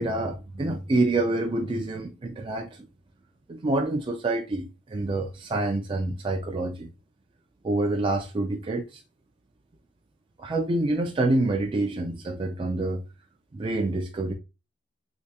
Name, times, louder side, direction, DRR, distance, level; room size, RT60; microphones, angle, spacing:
voice 1, 0.0-2.9 3.5-6.9 7.6-9.0 10.4-13.0 13.5-14.3, right 2 dB, 25° right, 0.3 m, -27 dB
3.3 x 3.2 x 2.8 m
head